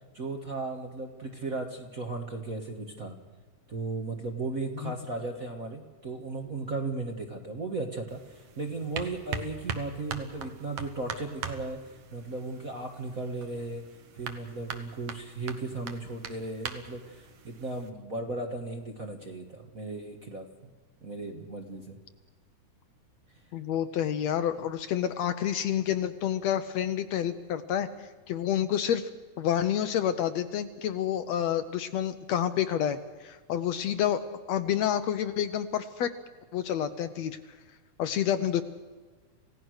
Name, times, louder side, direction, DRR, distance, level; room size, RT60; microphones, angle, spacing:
voice 1, 0.1-3.1 3.7-11.8 12.1-13.8 14.1-20.4 21.0-22.0, right 3 dB, 35° right, 3 dB, 1.5 m, -36 dB
sound 1, 8.1-17.9, right 6 dB, 55° right, 2.2 m, -41 dB
voice 2, 23.5-29.1 29.4-34.2 34.5-36.1 36.5-37.4 38.0-38.6, left 10 dB, 70° left, 10 dB, 1.9 m, -29 dB
28.0 x 16.5 x 6.5 m, 1.4 s
omnidirectional pair, 3.5 m